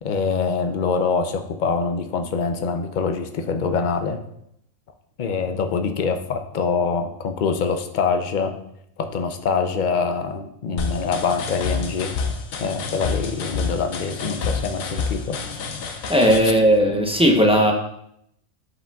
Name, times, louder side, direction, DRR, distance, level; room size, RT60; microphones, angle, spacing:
voice 1, 0.0-4.2 5.2-8.5 9.0-12.1 12.6-15.4, left 5 dB, 55° left, 6 dB, 0.5 m, -24 dB
sound 1, 10.8-16.4, left 5 dB, 90° left, 1.2 m, -28 dB
voice 2, 16.1-17.7, equal, 5° right, 1 dB, 0.5 m, -16 dB
11.0 x 5.0 x 2.3 m, 0.74 s
omnidirectional pair, 1.4 m